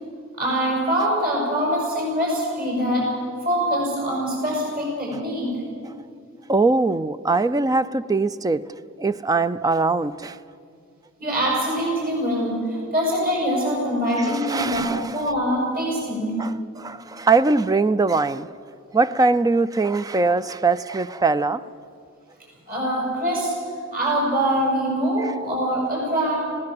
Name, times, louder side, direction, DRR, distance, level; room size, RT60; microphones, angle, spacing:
voice 1, 0.4-3.1 3.4-5.6 11.2-16.4 22.7-23.5 23.9-26.3, equal, 45° right, -3 dB, 6.6 m, -24 dB
voice 2, 6.5-8.6 9.0-10.4 14.2-15.2 16.4-18.5 18.9-21.6, right 3 dB, 15° right, 15 dB, 0.4 m, -21 dB
19.5 x 17.5 x 7.7 m, 2.3 s
head